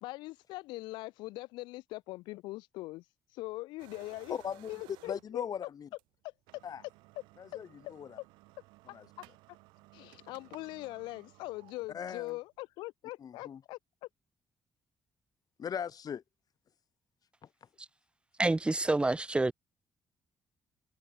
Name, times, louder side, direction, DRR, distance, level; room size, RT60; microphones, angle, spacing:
voice 1, 0.0-3.0 3.3-4.4 4.7-5.5 6.2-6.6 7.8-7.9 8.9-9.3 9.9-14.1, left 20 dB, 80° left, 0.6 m, -42 dB
sound 1, 3.8-5.5 6.0-6.1 6.4-12.6, right 23 dB, 80° right, 5.8 m, -58 dB
voice 2, 4.3-4.7 5.1-5.9 6.6-6.8 7.4-8.2 8.9-9.1 11.9-12.4 13.2-13.6 15.6-16.2 17.4-17.5, left 8 dB, 55° left, 1.2 m, -39 dB
voice 3, 18.4-19.5, right 2 dB, 15° right, 0.4 m, -27 dB
hypercardioid pair, 45°, 8 cm